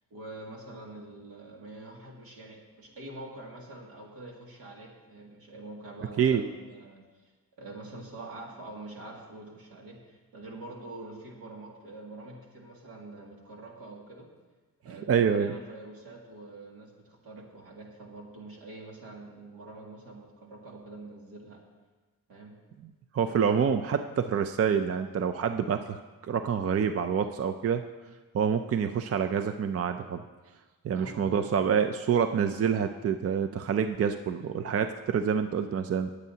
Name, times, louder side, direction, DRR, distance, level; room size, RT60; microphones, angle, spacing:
voice 1, 0.1-7.3 7.6-14.3 14.8-21.6 22.3-22.5 30.9-31.6, right 2 dB, 85° right, -1 dB, 2.4 m, -45 dB
voice 2, 6.2-6.5 15.1-15.5 23.1-26.0 26.3-27.8 28.3-30.2 30.8-36.1, right 7 dB, 45° right, 8 dB, 0.5 m, -27 dB
21.5 x 8.2 x 2.8 m, 1.3 s
cardioid pair, 100°, 35 cm